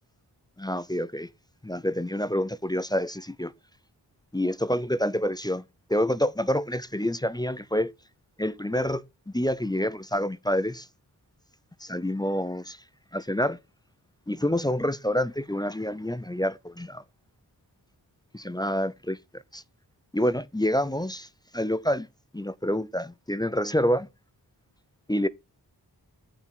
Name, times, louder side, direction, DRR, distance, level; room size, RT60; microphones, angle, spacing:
voice 1, 0.6-1.3 1.6-3.5 4.3-5.6 5.9-7.9 8.4-9.0 9.3-10.9 11.8-12.8 13.1-13.6 14.3-17.0 18.3-19.6 20.1-21.3 21.5-22.1 22.3-24.1 25.1-25.3, equal, 10° left, 0.5 m, -27 dB
8.9 x 5.3 x 4.9 m
wide cardioid pair, 60°, 41 cm